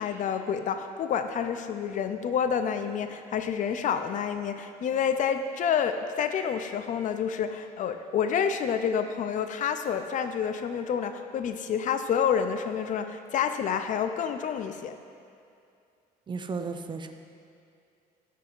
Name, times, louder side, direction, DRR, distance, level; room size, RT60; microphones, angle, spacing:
voice 1, 0.0-14.9, left 7 dB, 50° left, 8 dB, 0.4 m, -28 dB
voice 2, 16.3-17.1, right 4 dB, 30° right, 7 dB, 0.4 m, -34 dB
12.0 x 4.6 x 2.4 m, 2.4 s
cardioid pair, 110°, 17 cm